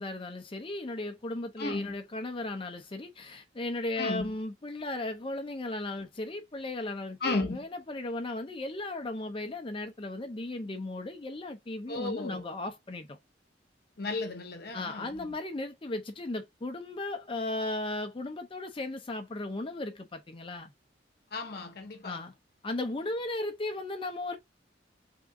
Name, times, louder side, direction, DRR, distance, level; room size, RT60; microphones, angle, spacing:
voice 1, 0.0-13.2 14.7-20.7 22.0-22.3 22.6-24.4, left 2 dB, 30° left, 0.5 m, -36 dB
voice 2, 1.6-2.0 4.0-4.3 7.2-7.6 11.9-12.5 14.0-15.3 21.3-22.3, left 3 dB, 55° left, 0.9 m, -34 dB
3.6 x 2.5 x 3.5 m
head